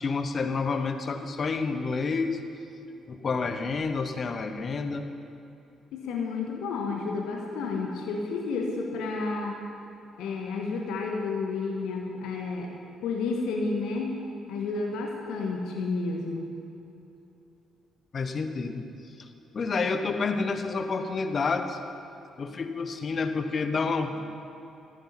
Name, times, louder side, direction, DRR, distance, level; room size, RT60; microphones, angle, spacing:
voice 1, 0.0-2.4 3.1-5.1 18.1-18.8 19.2-19.3 19.5-21.8 22.4-24.3, left 4 dB, 40° left, 8 dB, 1.1 m, -29 dB
voice 2, 5.9-9.6 10.2-12.7 13.0-14.1 14.5-16.5, left 3 dB, 60° left, 1 dB, 1.5 m, -31 dB
16.5 x 14.5 x 4.3 m, 2.9 s
figure-of-eight pair, 45°, 0 cm